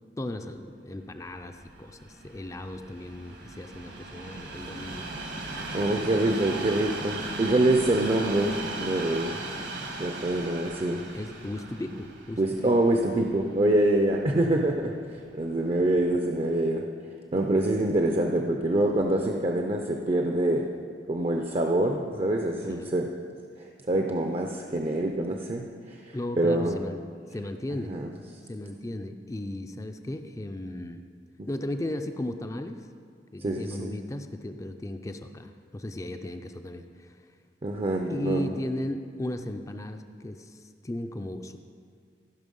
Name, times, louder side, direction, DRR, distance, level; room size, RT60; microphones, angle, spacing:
voice 1, 0.2-5.0 11.1-12.7 22.6-22.9 26.1-27.1 27.3-28.0 28.5-31.0 31.5-32.8 33.3-37.1 38.1-41.6, left 1 dB, 20° left, 7 dB, 0.4 m, -36 dB
Train, 1.3-14.5 15.2-15.3, right 2 dB, 75° right, 1.6 m, -38 dB
voice 2, 5.7-9.5 10.0-11.0 12.4-16.8 17.3-20.7 21.1-23.1 23.6-26.8 27.9-28.1 31.4-31.5 33.4-34.0 37.6-38.6, right 1 dB, 35° right, 3 dB, 0.5 m, -25 dB
15.0 x 5.7 x 5.4 m, 2.1 s
head